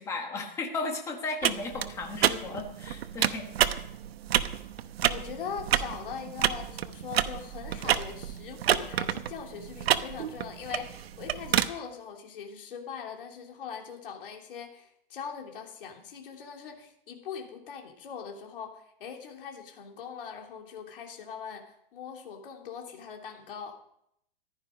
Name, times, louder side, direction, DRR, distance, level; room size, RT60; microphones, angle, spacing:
voice 1, 0.0-3.5, left 3 dB, 10° left, 3 dB, 1.3 m, -35 dB
sound 1, 1.4-11.7, right 10 dB, 90° right, 1.0 m, -29 dB
voice 2, 5.1-23.8, left 7 dB, 65° left, 2 dB, 3.2 m, -41 dB
15.0 x 11.5 x 5.1 m, 0.74 s
supercardioid pair, 175°, 30 cm